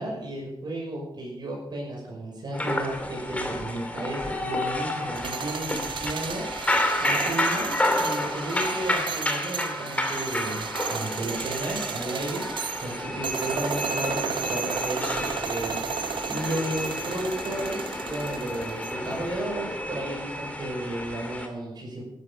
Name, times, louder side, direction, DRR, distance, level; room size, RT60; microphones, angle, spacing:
voice 1, 0.0-6.7 7.0-12.5 12.8-22.0, right 1 dB, 60° right, -3 dB, 6.0 m, -33 dB
sound 1, 2.5-21.5, left 1 dB, 15° left, 2.5 m, -30 dB
sound 2, 5.0-19.2, right 8 dB, 75° right, 0.5 m, -34 dB
14.5 x 13.0 x 5.4 m, 0.81 s
wide cardioid pair, 115°, 8 cm